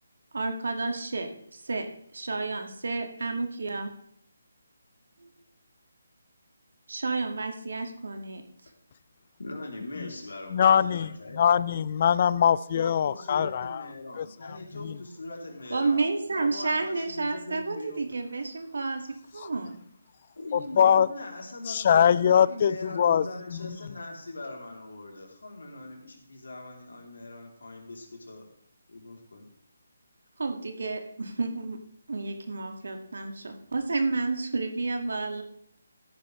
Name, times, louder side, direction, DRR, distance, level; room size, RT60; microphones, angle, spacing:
voice 1, 0.3-1.9 2.1-3.9 5.2-5.3 6.9-8.4 15.7-19.8 30.4-31.8 32.1-35.4, right 3 dB, 75° right, 1.9 m, -31 dB
voice 2, 9.4-11.5 12.7-16.0 16.3-18.1 20.3-28.5 28.9-29.4, left 2 dB, 80° left, 3.2 m, -41 dB
voice 3, 10.5-13.8 14.2-15.0 19.4-19.5 20.5-21.1 21.7-23.3 23.5-23.7, left 8 dB, 40° left, 0.4 m, -23 dB
14.5 x 10.0 x 3.2 m
figure-of-eight pair, 160°, 0 cm